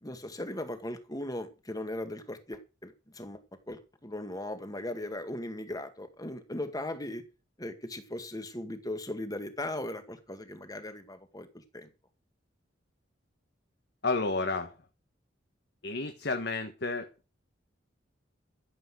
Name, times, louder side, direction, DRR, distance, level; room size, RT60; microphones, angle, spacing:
voice 1, 0.0-3.4 3.7-7.2 7.6-11.5 11.7-11.9, left 1 dB, 20° left, 8 dB, 2.0 m, -38 dB
voice 2, 14.0-14.7 15.8-17.1, left 3 dB, 60° left, 7 dB, 1.6 m, -31 dB
14.0 x 8.0 x 6.3 m, 0.31 s
head